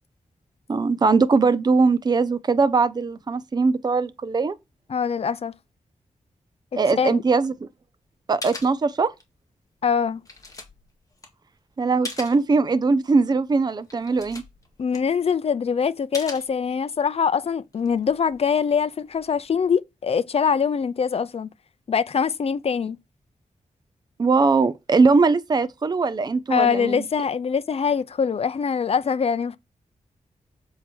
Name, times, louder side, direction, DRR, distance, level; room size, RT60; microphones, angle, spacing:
voice 1, 0.7-4.5 6.8-7.7 8.3-9.1 11.8-14.4 24.2-27.1, right 4 dB, 30° right, 0.6 m, -20 dB
voice 2, 4.9-5.5 7.0-7.2 9.8-10.2 14.8-21.5 21.9-23.0 26.5-29.6, left 6 dB, 50° left, 0.6 m, -23 dB
sound 1, 8.1-8.2 8.4-9.4 9.8-12.5 12.9-13.0 13.5-13.6 13.8-15.5 16.1-17.1 17.6-19.8, left 2 dB, 25° left, 1.7 m, -40 dB
7.6 x 4.8 x 4.4 m
wide cardioid pair, 155°, 13 cm